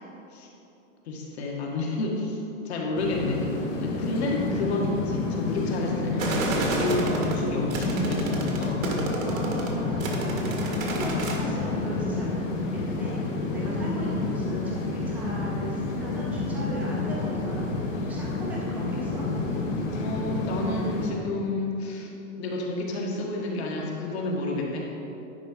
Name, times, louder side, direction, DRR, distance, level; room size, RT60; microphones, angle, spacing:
voice 1, 1.1-8.8 13.6-13.8 17.9-18.0 18.3-18.7 19.0-19.4 20.0-22.1 22.4-24.9, left 2 dB, 55° left, -1 dB, 1.6 m, -30 dB
sound 1, 2.9-21.1, left 3 dB, 70° left, 1.9 m, -29 dB
sound 2, 6.2-11.4, right 2 dB, 85° right, 1.8 m, -30 dB
voice 2, 9.2-17.8 18.1-19.2, right 1 dB, 5° right, -5 dB, 0.5 m, -37 dB
10.5 x 4.8 x 5.1 m, 3.0 s
supercardioid pair, 175°, 39 cm